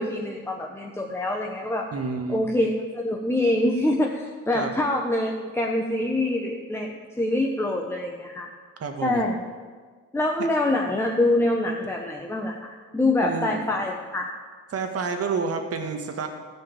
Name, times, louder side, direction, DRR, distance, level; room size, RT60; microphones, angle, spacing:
voice 1, 0.0-1.9 2.3-8.5 9.0-9.4 10.1-14.3, left 1 dB, 10° left, 0 dB, 1.1 m, -25 dB
voice 2, 1.9-2.4 4.5-4.8 8.8-9.2 13.2-13.6 14.7-16.3, right 5 dB, 50° right, 5 dB, 1.7 m, -29 dB
13.5 x 5.2 x 8.6 m, 1.5 s
cardioid pair, 90°, 30 cm